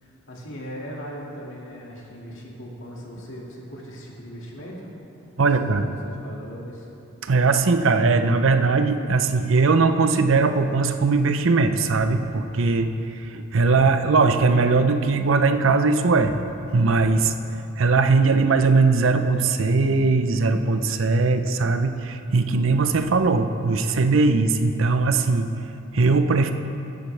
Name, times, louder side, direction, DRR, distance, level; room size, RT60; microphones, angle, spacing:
voice 1, 0.0-4.9 5.4-6.9, equal, 70° left, -3 dB, 2.1 m, -39 dB
voice 2, 5.4-5.9 7.2-16.3 16.7-17.3 17.8-25.5 25.9-26.5, right 4 dB, 75° right, 8 dB, 0.6 m, -20 dB
15.5 x 10.5 x 3.3 m, 2.7 s
head